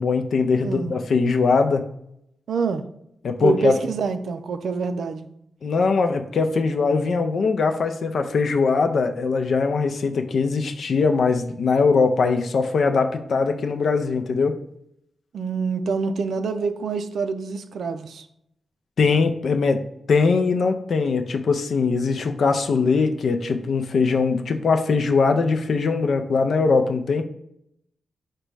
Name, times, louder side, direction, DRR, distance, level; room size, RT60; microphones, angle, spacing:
voice 1, 0.0-1.9 3.2-3.8 5.6-14.5 19.0-19.8 20.1-27.2, left 4 dB, 60° left, 6 dB, 0.4 m, -21 dB
voice 2, 0.6-1.0 2.5-2.8 3.4-5.3 15.3-18.3, right 4 dB, 70° right, 9 dB, 0.4 m, -26 dB
5.0 x 2.2 x 4.6 m, 0.76 s
wide cardioid pair, 140°, 0 cm